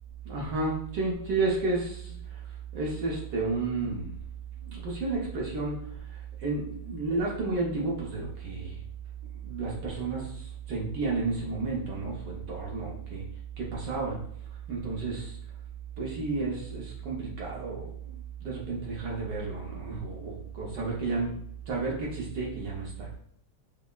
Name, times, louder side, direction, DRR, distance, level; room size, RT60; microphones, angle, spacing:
voice 1, 0.2-2.4 2.7-4.1 4.6-5.8 6.1-8.8 9.4-13.2 13.6-14.2 14.7-15.4 16.0-21.3 21.7-23.1, right 3 dB, 65° right, -3 dB, 1.2 m, -32 dB
5.3 x 2.0 x 2.3 m, 0.63 s
omnidirectional pair, 2.2 m